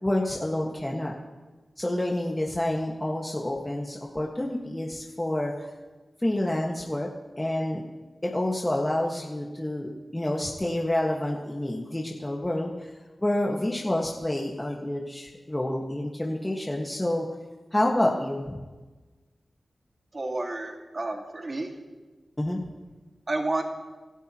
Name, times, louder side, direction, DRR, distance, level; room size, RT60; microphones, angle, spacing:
voice 1, 0.0-1.1 1.8-5.5 6.2-7.1 7.4-7.8 8.2-12.9 13.2-17.2 17.7-18.5 22.4-22.6, left 1 dB, 20° left, -1 dB, 1.6 m, -28 dB
voice 2, 20.1-21.7 23.3-23.6, right 2 dB, 45° right, 2 dB, 2.0 m, -30 dB
26.0 x 13.0 x 3.0 m, 1.3 s
cardioid pair, 55°, 0 cm